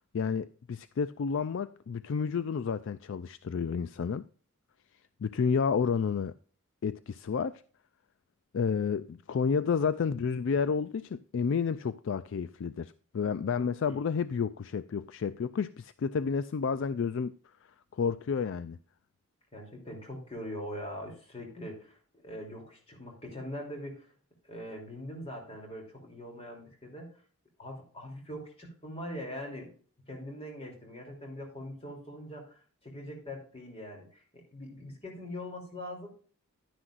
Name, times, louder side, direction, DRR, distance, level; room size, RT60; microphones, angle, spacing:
voice 1, 0.1-4.3 5.2-6.3 6.8-7.6 8.5-17.3 17.9-18.8, left 6 dB, 60° left, 0.3 m, -30 dB
voice 2, 13.6-14.0 19.5-22.0 22.2-24.1 24.4-27.1 27.6-29.7 30.1-34.2 34.5-36.1, equal, 25° left, 3.0 m, -42 dB
11.0 x 9.9 x 2.5 m
head